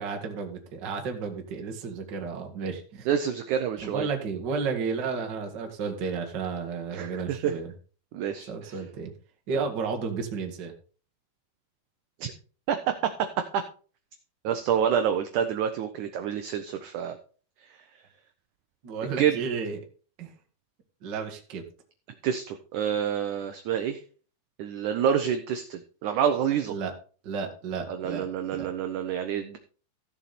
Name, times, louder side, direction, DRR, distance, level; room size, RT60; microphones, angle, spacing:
voice 1, 0.0-3.1 3.8-7.7 8.5-9.1 9.5-10.7 18.8-19.8 20.2-20.3 21.0-21.6 26.7-26.9 27.2-28.3 28.5-28.7, right 5 dB, 45° right, 4 dB, 1.6 m, -32 dB
voice 2, 3.1-4.1 6.9-7.5 8.1-8.8 12.2-12.3 12.7-13.0 13.5-13.6 14.4-17.2 19.2-19.4 22.2-24.0 24.6-26.7 27.9-29.6, right 8 dB, 75° right, 7 dB, 1.8 m, -28 dB
14.5 x 7.1 x 4.2 m, 0.40 s
omnidirectional pair, 4.5 m